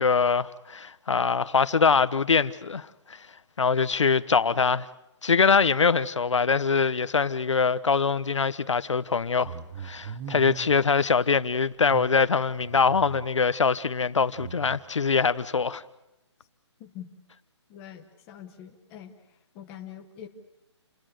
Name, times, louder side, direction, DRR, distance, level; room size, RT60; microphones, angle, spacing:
voice 1, 0.0-3.2 3.6-4.9 5.2-9.5 9.8-15.8, left 5 dB, 90° left, 1.1 m, -23 dB
sound 1, 9.1-10.8 11.8-13.4 14.3-14.8, right 7 dB, 10° right, 0.8 m, -41 dB
voice 2, 16.8-17.1 17.7-19.1 19.5-20.3, left 10 dB, 10° left, 1.1 m, -44 dB
29.5 x 20.5 x 6.8 m
hypercardioid pair, 175°, 15 cm